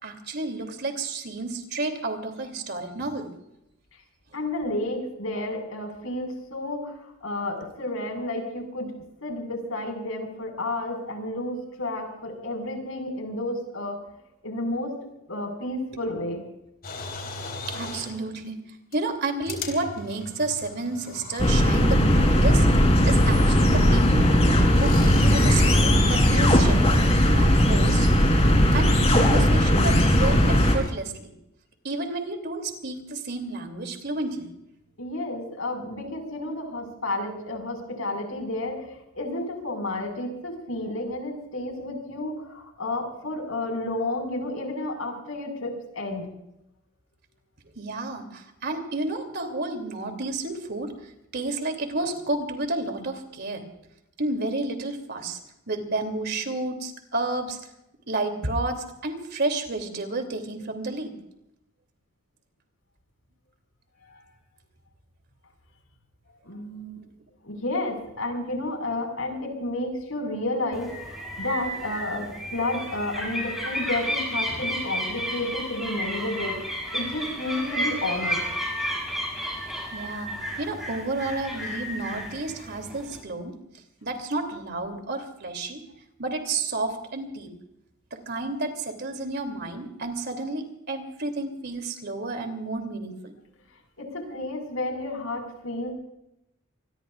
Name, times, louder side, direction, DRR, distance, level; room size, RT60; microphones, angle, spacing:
voice 1, 0.0-3.3 17.3-17.4 17.7-18.6 18.9-22.7 23.1-27.0 27.3-28.1 28.7-31.3 31.8-34.5 47.7-53.7 54.2-55.4 55.7-57.6 58.1-61.1 79.9-80.3 80.6-83.6 84.0-85.8 86.2-87.5 88.3-93.3, right 2 dB, 55° right, 5 dB, 3.0 m, -31 dB
voice 2, 4.3-8.9 9.2-14.0 14.4-14.9 15.3-16.4 35.0-46.3 64.0-64.2 66.4-67.0 67.4-78.4 94.0-95.9, left 2 dB, 85° left, 4 dB, 5.4 m, -31 dB
sound 1, 16.8-18.2 18.9-19.0 19.5-22.4 22.7-22.8 24.7-26.0 28.7-28.8 29.2-29.6 29.9-30.9, left 2 dB, 50° left, 3.9 m, -38 dB
sound 2, 21.4-30.8, equal, 30° left, 3.5 m, -18 dB
sound 3, 70.7-83.2, equal, ahead, 7.0 m, -32 dB
25.5 x 21.0 x 2.5 m, 0.84 s
head